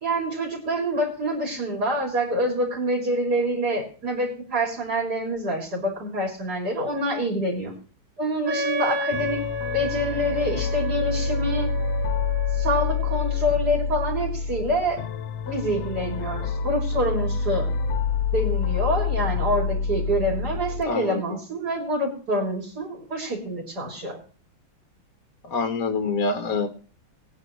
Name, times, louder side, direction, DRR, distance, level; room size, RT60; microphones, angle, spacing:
voice 1, 0.0-7.7 8.2-9.4 9.7-11.7 12.5-15.0 15.5-17.7 18.3-24.2, equal, 50° right, -1 dB, 4.0 m, -26 dB
Wind instrument woodwind instrument, 8.4-14.1, left 1 dB, 65° right, 1.8 m, -32 dB
sound 1, 9.1-20.8, left 5 dB, 75° left, 1.5 m, -27 dB
voice 2, 20.8-21.2 25.4-26.7, left 4 dB, 50° left, 7 dB, 1.2 m, -25 dB
20.0 x 9.8 x 3.2 m, 0.40 s
omnidirectional pair, 2.3 m